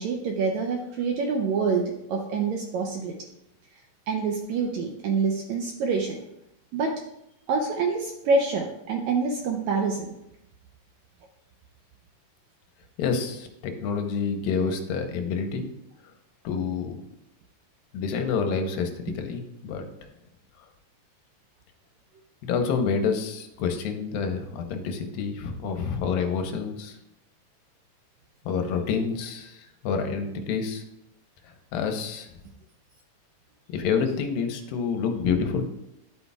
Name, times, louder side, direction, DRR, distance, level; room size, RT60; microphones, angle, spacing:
voice 1, 0.0-3.1 4.1-6.2 6.7-6.9 7.5-10.1 19.1-19.2, right 4 dB, 90° right, 2 dB, 1.5 m, -26 dB
voice 2, 13.0-15.7 16.4-17.0 17.9-18.9 19.2-19.8 22.4-26.9 28.5-29.6 29.8-30.8 31.7-32.3 33.7-35.7, left 5 dB, 85° left, 5 dB, 2.6 m, -28 dB
11.0 x 8.2 x 2.4 m, 0.85 s
omnidirectional pair, 4.1 m